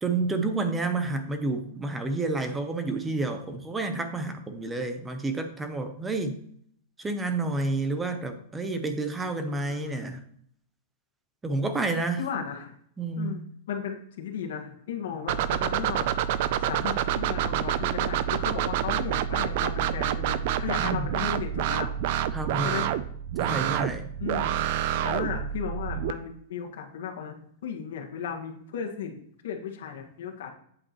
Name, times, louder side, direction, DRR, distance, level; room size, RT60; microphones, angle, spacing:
voice 1, 0.0-6.4 7.0-10.2 11.4-12.3 13.0-13.4 20.8-21.1 22.3-22.8 23.4-24.1, right 3 dB, 10° right, 8 dB, 0.7 m, -30 dB
voice 2, 9.1-10.1 12.2-12.7 13.2-21.9 22.6-22.9 24.2-24.7 25.0-30.5, left 7 dB, 70° left, 2 dB, 1.6 m, -36 dB
sound 1, 15.3-26.1, right 10 dB, 45° right, 0.4 m, -28 dB
8.6 x 7.8 x 3.0 m, 0.66 s
supercardioid pair, 165°, 0 cm